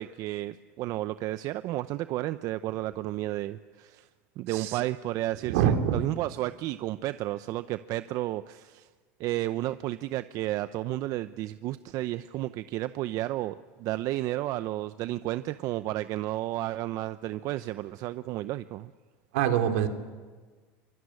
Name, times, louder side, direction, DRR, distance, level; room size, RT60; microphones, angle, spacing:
voice 1, 0.0-4.0 4.4-8.9 9.2-18.9, right 15 dB, 55° right, 13 dB, 0.8 m, -32 dB
voice 2, 4.5-4.8 5.5-6.0 19.3-19.9, right 9 dB, 80° right, 6 dB, 3.2 m, -25 dB
24.5 x 22.5 x 9.7 m, 1.4 s
supercardioid pair, 110°, 7 cm